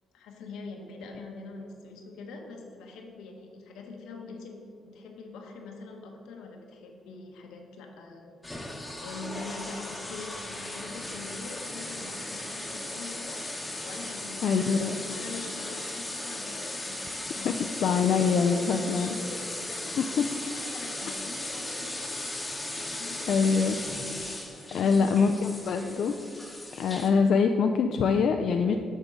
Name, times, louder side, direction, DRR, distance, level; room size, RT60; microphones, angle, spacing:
voice 1, 0.1-8.3 9.0-13.4 13.8-14.8 15.1-18.6 18.9-20.2 20.5-22.2 22.8-23.7 24.7-25.3, left 3 dB, 90° left, 2 dB, 1.0 m, -44 dB
sound 1, 8.4-27.1, left 1 dB, 15° left, 1.0 m, -37 dB
voice 2, 14.4-15.0 17.4-19.2 20.0-20.3 23.3-23.8 24.7-26.1 26.8-28.8, left 5 dB, 65° left, 5 dB, 0.3 m, -24 dB
7.9 x 3.6 x 6.2 m, 2.3 s
cardioid pair, 90°, 0 cm